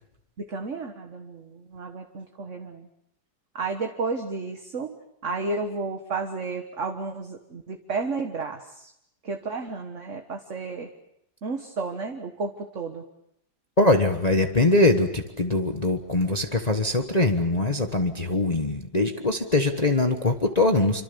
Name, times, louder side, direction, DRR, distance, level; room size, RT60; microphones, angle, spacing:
voice 1, 0.4-2.9 3.6-5.0 5.2-8.9 9.2-10.9 11.4-13.0, right 4 dB, 45° right, 5 dB, 1.7 m, -32 dB
voice 2, 13.8-21.0, left 2 dB, 25° left, 5 dB, 1.3 m, -22 dB
27.0 x 25.5 x 7.0 m, 0.78 s
omnidirectional pair, 2.0 m